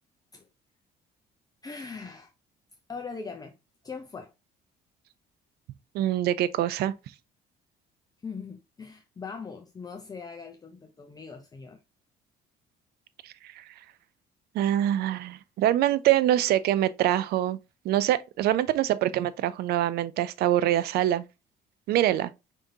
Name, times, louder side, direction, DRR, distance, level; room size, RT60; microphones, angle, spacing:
voice 1, 1.6-2.3 2.9-3.5 3.8-4.3 8.2-11.8, left 5 dB, 20° left, 0.6 m, -40 dB
voice 2, 5.9-6.9 13.2-13.6 14.5-17.6 17.8-21.2 21.9-22.3, right 12 dB, 70° right, 0.5 m, -24 dB
5.1 x 3.5 x 2.7 m
cardioid pair, 110°, 17 cm